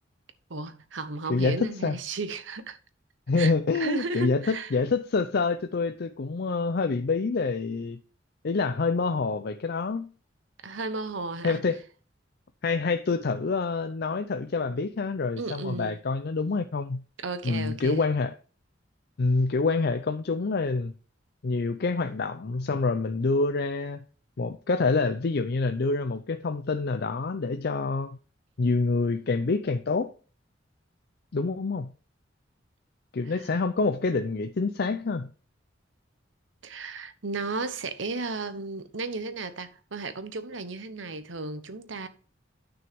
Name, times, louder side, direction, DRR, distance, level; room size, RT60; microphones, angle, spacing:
voice 1, 0.5-2.8 3.4-4.7 10.6-11.6 15.4-16.0 17.2-18.0 33.2-33.5 36.6-42.1, right 3 dB, 80° right, 1.0 m, -34 dB
voice 2, 1.3-2.0 3.3-8.0 8.4-10.1 11.4-11.8 12.6-17.0 17.4-18.3 19.2-20.9 21.4-24.0 24.4-28.2 28.6-30.1 31.3-31.9 33.1-35.3, left 3 dB, 60° left, 0.5 m, -27 dB
9.4 x 6.3 x 3.5 m
head